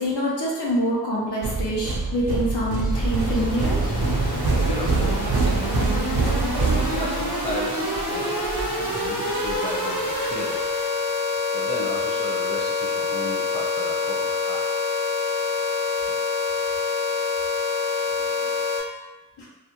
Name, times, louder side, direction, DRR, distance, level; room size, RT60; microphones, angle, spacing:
voice 1, 0.0-3.8 19.4-19.5, equal, 90° left, -5 dB, 0.8 m, -25 dB
sound 1, 1.4-9.6, right 1 dB, 70° left, 1.1 m, -40 dB
sound 2, 1.4-7.4, right 3 dB, 65° right, 0.5 m, -25 dB
sound 3, 2.9-18.8, left 2 dB, 50° left, 0.9 m, -26 dB
voice 2, 4.5-5.8 6.5-10.7 11.5-14.7 15.9-16.0 18.2-18.6, left 1 dB, 15° left, -3 dB, 0.5 m, -34 dB
2.4 x 2.1 x 2.9 m, 1.0 s
wide cardioid pair, 70°, 39 cm